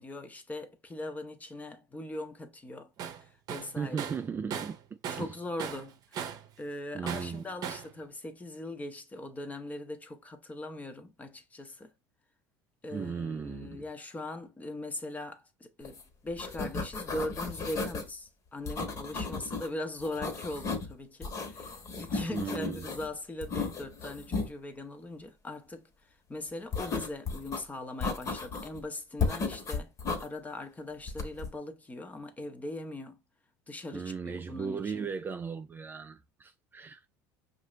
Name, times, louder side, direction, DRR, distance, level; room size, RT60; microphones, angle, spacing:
voice 1, 0.0-2.9 3.2-4.0 5.1-11.9 12.8-25.8 26.3-29.9 30.2-33.2 33.7-35.1, left 1 dB, 15° left, 0.8 m, -40 dB
Tools, 3.0-3.2 3.5-5.3 5.6-6.5 7.1-7.9, right 8 dB, 50° right, 0.8 m, -38 dB
voice 2, 3.8-4.8 5.2-5.3 6.9-7.5 12.9-13.8 22.3-22.9 33.9-37.1, right 6 dB, 25° right, 0.3 m, -37 dB
sound 1, 15.9-16.0 16.3-18.1 18.7-19.7 20.0-20.9 21.2-23.1 23.4-24.5 26.7-27.6 28.0-28.8 29.2-30.3 31.1-31.5, left 4 dB, 40° left, 1.3 m, -34 dB
5.4 x 2.6 x 3.1 m
supercardioid pair, 100°, 9 cm